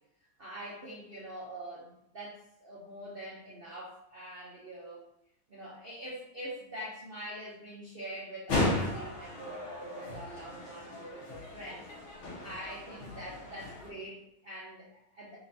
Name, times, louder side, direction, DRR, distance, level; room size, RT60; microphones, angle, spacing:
voice 1, 0.4-5.0 5.5-11.9 12.4-15.4, right 1 dB, 75° right, -6 dB, 0.5 m, -44 dB
sound 1, 8.5-13.9, left 2 dB, 90° left, 1.9 m, -35 dB
4.5 x 2.6 x 3.9 m, 0.79 s
omnidirectional pair, 2.2 m